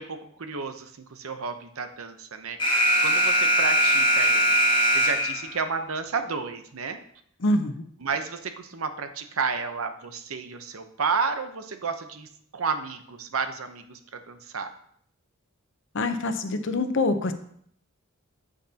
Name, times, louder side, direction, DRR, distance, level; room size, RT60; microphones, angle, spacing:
voice 1, 0.0-4.6 4.9-7.0 8.0-14.7, right 5 dB, 75° right, 8 dB, 0.8 m, -32 dB
Alarm, 2.6-5.6, equal, 25° left, 1.7 m, -21 dB
voice 2, 7.4-7.8 15.9-17.3, left 2 dB, 60° left, 8 dB, 0.8 m, -25 dB
8.6 x 8.4 x 2.9 m, 0.64 s
head